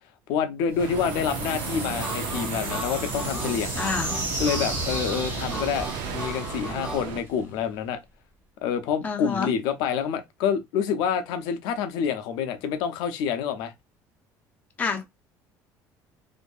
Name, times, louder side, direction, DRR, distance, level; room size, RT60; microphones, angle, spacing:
voice 1, 0.3-3.8 4.4-5.9 6.1-8.0 8.6-13.7, left 7 dB, 85° left, 0.5 m, -27 dB
sound 1, 0.7-7.6, right 2 dB, 35° right, 1.4 m, -33 dB
sound 2, 0.8-7.2, right 8 dB, 80° right, 0.5 m, -36 dB
Harmonica, 2.0-7.1, equal, 10° right, 0.9 m, -38 dB
voice 2, 3.7-4.1 9.0-9.5 14.8-15.0, left 5 dB, 20° left, 0.6 m, -28 dB
2.6 x 2.5 x 2.3 m
cardioid pair, 155°, 7 cm